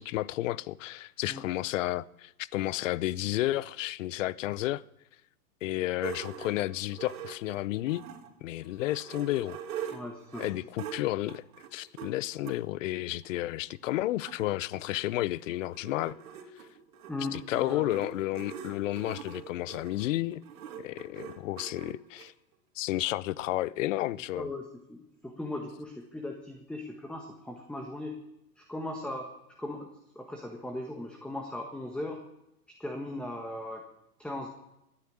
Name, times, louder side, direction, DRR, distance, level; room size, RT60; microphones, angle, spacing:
voice 1, 0.0-4.8 5.6-8.0 8.4-9.6 10.4-11.5 11.7-16.2 17.3-20.4 20.8-22.3 22.8-24.5, left 16 dB, 55° left, 0.7 m, -32 dB
sound 1, 6.0-8.3 8.7-12.6 13.3-13.4 13.7-13.8 14.0-22.3, right 8 dB, 65° right, 2.5 m, -43 dB
voice 2, 9.9-10.4 17.1-18.0 24.3-28.2 28.6-29.3 29.6-29.9 30.1-32.2 32.8-33.8 34.2-34.5, left 1 dB, ahead, 1.5 m, -38 dB
16.0 x 10.0 x 8.6 m
hypercardioid pair, 120°, 46 cm